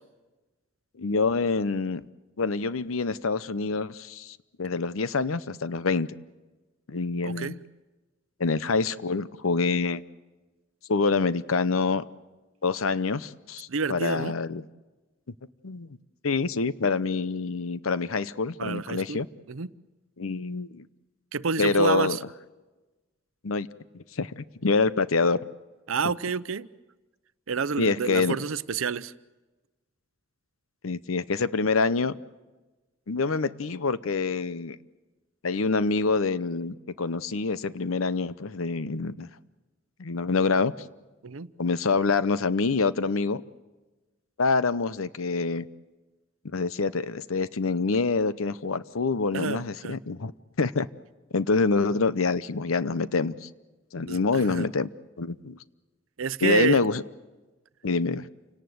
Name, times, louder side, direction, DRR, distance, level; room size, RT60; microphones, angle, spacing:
voice 1, 1.0-2.0 2.4-6.1 6.9-7.6 8.4-10.0 10.9-12.0 12.6-14.6 15.6-15.9 16.2-19.3 20.2-20.9 21.6-22.2 23.4-23.7 23.9-24.3 24.6-25.4 27.8-28.4 30.8-32.2 33.1-34.8 35.4-39.3 40.0-40.7 41.6-43.4 44.4-45.7 46.5-50.3 50.6-50.9 51.3-53.5 53.9-54.9 55.2-55.6 56.4-57.0 57.8-58.3, left 4 dB, 85° left, 16 dB, 0.8 m, -26 dB
voice 2, 7.2-7.5 13.7-14.3 18.6-19.2 19.5-19.7 21.3-22.2 25.9-26.7 27.5-29.1 41.2-41.5 49.3-50.0 54.1-54.7 56.2-56.8, right 5 dB, 75° right, 16 dB, 0.7 m, -29 dB
28.5 x 18.0 x 7.9 m, 1.2 s
head